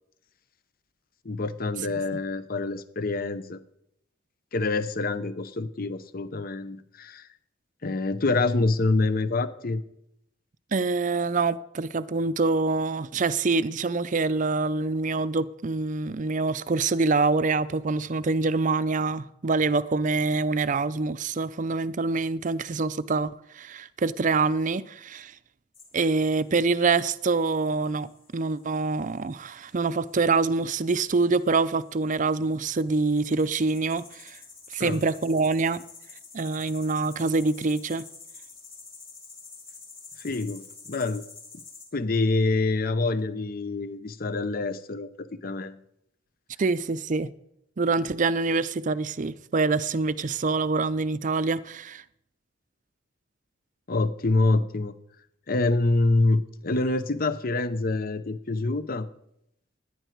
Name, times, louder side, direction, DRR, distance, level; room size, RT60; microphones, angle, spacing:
voice 1, 1.2-3.6 4.5-7.3 7.8-9.8 34.8-35.0 40.2-40.6 40.9-41.2 41.9-45.8 53.9-55.0 55.5-59.1, left 2 dB, 45° left, 0.7 m, -26 dB
voice 2, 10.7-25.3 25.9-28.1 28.3-34.4 34.7-35.8 36.3-38.0 46.6-47.3 47.8-52.0, right 3 dB, 40° right, 0.5 m, -25 dB
sound 1, 25.7-41.8, left 4 dB, 30° left, 4.6 m, -50 dB
17.0 x 11.0 x 4.6 m
head